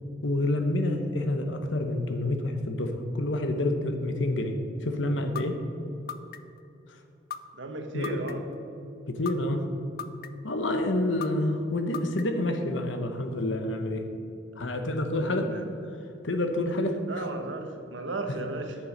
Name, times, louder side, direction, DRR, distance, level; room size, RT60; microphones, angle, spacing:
voice 1, 0.2-5.6 7.9-8.2 9.1-9.7 10.4-14.0 14.6-15.5 16.2-17.2, left 1 dB, 75° left, 6 dB, 1.0 m, -28 dB
sound 1, 5.4-5.5 6.1-6.6 7.3-7.4 8.0-8.6 9.3-9.4 10.0-10.5 11.2-11.3 11.9-12.5, left 8 dB, 50° left, 0.5 m, -36 dB
voice 2, 7.6-8.4 15.2-15.6 17.1-18.8, right 2 dB, 75° right, 5 dB, 1.1 m, -35 dB
9.9 x 6.7 x 5.2 m, 2.7 s
head